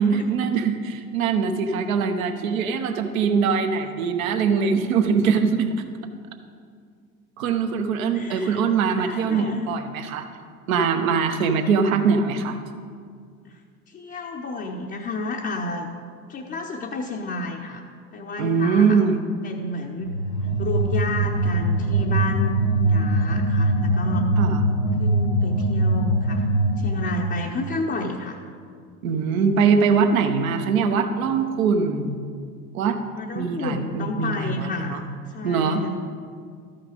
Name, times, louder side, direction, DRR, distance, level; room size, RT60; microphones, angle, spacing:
voice 1, 0.0-5.7 7.4-10.3 10.7-12.6 18.4-19.2 24.4-24.6 29.0-32.2 32.7-33.0 33.3-35.0 35.4-35.8, right 5 dB, 65° right, 6 dB, 1.0 m, -22 dB
voice 2, 8.1-8.6 9.0-9.7 13.4-13.6 13.9-15.9 16.3-17.8 18.1-20.1 20.6-24.3 25.0-26.5 26.8-28.4 33.1-35.0 35.3-35.9, left 2 dB, 25° left, -1 dB, 0.7 m, -31 dB
sound 1, 20.0-27.4, right 1 dB, 85° left, 1.9 m, -22 dB
13.0 x 5.8 x 5.1 m, 2.1 s
figure-of-eight pair, 70°, 44 cm